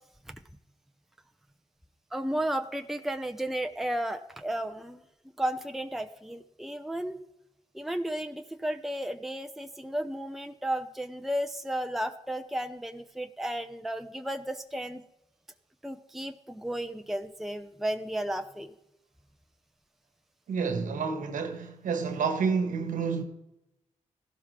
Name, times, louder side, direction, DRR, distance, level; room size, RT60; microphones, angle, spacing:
voice 1, 2.1-5.0 5.4-7.2 7.7-15.0 15.8-18.7, right 1 dB, ahead, 0.7 m, -33 dB
voice 2, 20.5-23.2, right 5 dB, 85° right, 1.5 m, -29 dB
15.0 x 12.0 x 3.8 m
cardioid pair, 60°, 13 cm